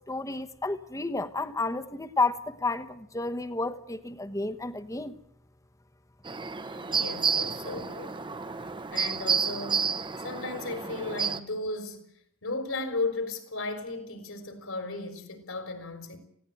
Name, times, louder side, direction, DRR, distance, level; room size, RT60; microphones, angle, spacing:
voice 1, 0.1-5.1, left 3 dB, 15° left, 1.1 m, -31 dB
sound 1, 6.2-11.4, right 6 dB, 25° right, 1.0 m, -30 dB
voice 2, 6.9-8.2 8.9-12.0 12.4-16.2, left 2 dB, 75° left, 4.4 m, -35 dB
19.0 x 16.5 x 9.0 m
head